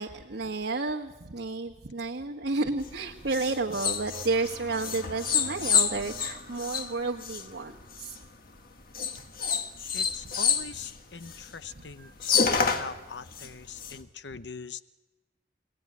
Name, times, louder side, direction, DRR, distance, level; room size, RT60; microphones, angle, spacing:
voice 1, 0.0-8.1 11.8-12.1, right 3 dB, 85° right, 1 dB, 1.3 m, -31 dB
sound 1, 2.8-8.3 8.9-11.6 11.9-12.0 12.2-13.9, left 6 dB, 55° left, 1.8 m, -29 dB
voice 2, 9.9-14.8, left 5 dB, 90° left, 13 dB, 0.9 m, -42 dB
29.0 x 17.5 x 9.7 m, 1.2 s
head